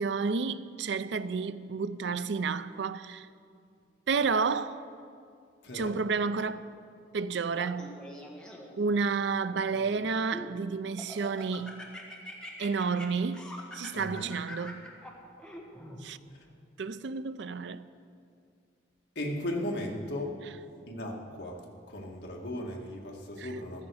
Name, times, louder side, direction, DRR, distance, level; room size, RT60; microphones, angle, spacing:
voice 1, 0.0-3.3 4.1-4.9 5.7-6.7 7.1-8.0 8.8-11.9 12.6-13.4 13.7-14.8 16.0-16.2 16.8-17.8 23.4-23.5, right 5 dB, 70° right, 0.5 m, -31 dB
voice 2, 5.6-6.0 13.9-14.3 16.3-16.5 19.2-20.3 20.9-21.6 21.9-23.9, left 1 dB, 60° left, 2.0 m, -36 dB
Laughter, 7.5-8.9 9.5-10.5 11.0-16.0, left 1 dB, 5° left, 1.5 m, -44 dB
15.5 x 13.5 x 4.8 m
head